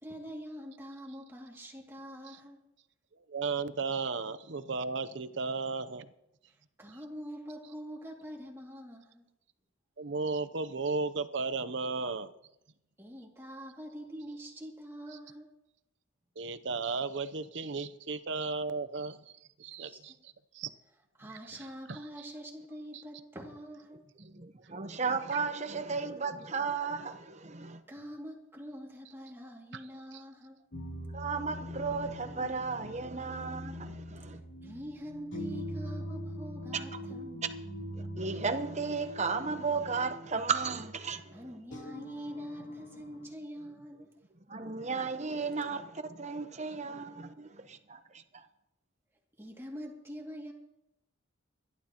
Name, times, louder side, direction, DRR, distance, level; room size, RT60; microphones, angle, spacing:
voice 1, 0.0-2.6 6.8-9.3 13.0-15.5 19.8-20.0 21.2-24.0 27.9-30.6 34.6-37.4 41.3-44.1 49.4-50.5, equal, 10° right, 2.4 m, -45 dB
voice 2, 3.3-6.1 10.0-12.3 16.4-19.2 19.6-20.7 21.2-22.3 22.9-23.0 29.7-29.9 30.1-30.2, right 4 dB, 65° right, 0.7 m, -35 dB
voice 3, 24.2-27.8 31.1-34.4 36.7-37.0 38.0-41.4 44.5-48.5, right 4 dB, 35° right, 0.9 m, -35 dB
sound 1, 30.7-43.3, equal, 75° left, 3.3 m, -43 dB
25.5 x 12.0 x 3.0 m
head